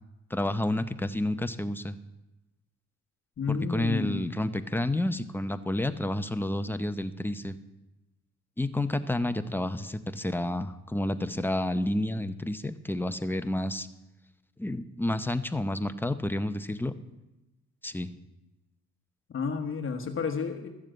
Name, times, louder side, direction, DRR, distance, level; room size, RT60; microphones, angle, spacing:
voice 1, 0.3-1.9 3.5-7.6 8.6-13.9 14.6-16.9 17.8-18.1, left 1 dB, 5° left, 10 dB, 0.7 m, -30 dB
voice 2, 3.4-4.4 19.3-20.7, left 5 dB, 45° left, 5 dB, 1.1 m, -31 dB
13.5 x 7.2 x 7.8 m, 1.0 s
cardioid pair, 90°, 30 cm